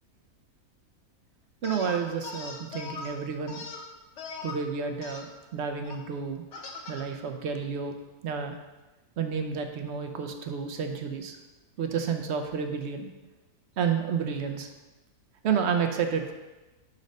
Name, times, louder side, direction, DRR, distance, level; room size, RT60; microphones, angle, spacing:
sound 1, 1.6-3.1 3.5-4.6 5.0-5.2 5.8-6.0 6.5-7.0, left 4 dB, 60° left, 1.0 m, -40 dB
voice 1, 1.6-3.6 4.4-5.3 5.5-6.4 6.9-7.9 8.2-8.6 9.2-11.4 11.8-13.1 13.8-14.7 15.4-16.3, right 6 dB, 65° right, 5 dB, 0.7 m, -30 dB
5.2 x 4.1 x 5.2 m, 1.1 s
omnidirectional pair, 1.6 m